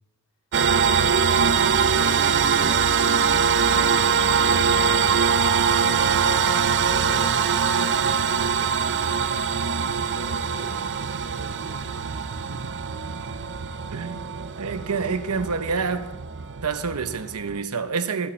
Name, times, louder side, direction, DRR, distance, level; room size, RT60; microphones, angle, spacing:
sound 1, 0.5-17.6, right 6 dB, 55° right, 0.5 m, -23 dB
sound 2, 1.4-5.9, left 1 dB, 25° left, 1.5 m, -43 dB
voice 1, 3.2-9.2 9.9-10.8 11.3-12.3, left 1 dB, 60° left, 3.3 m, -45 dB
voice 2, 13.9-14.3 14.6-16.1 16.6-18.3, right 5 dB, 85° right, 0.8 m, -27 dB
15.5 x 8.4 x 4.4 m
head